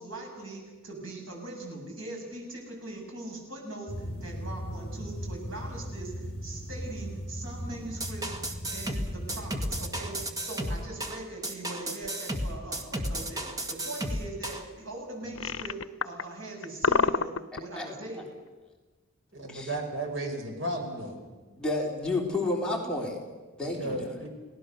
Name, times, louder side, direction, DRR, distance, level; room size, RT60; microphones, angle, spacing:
voice 1, 0.0-8.3 8.7-18.2, right 2 dB, 85° right, 0 dB, 7.9 m, -41 dB
sound 1, 3.9-10.3, equal, 30° left, 4.4 m, -38 dB
sound 2, 8.0-14.6, right 1 dB, 20° right, 2.0 m, -33 dB
sound 3, 12.0-12.2 15.2-16.2 16.6-17.6, left 5 dB, 85° left, 0.7 m, -27 dB
voice 2, 19.3-21.2 23.6-24.3, right 1 dB, 65° right, 3 dB, 5.4 m, -34 dB
voice 3, 21.6-23.2 23.6-24.1, left 2 dB, 5° left, -2 dB, 3.9 m, -30 dB
30.0 x 18.5 x 6.8 m, 1.2 s
head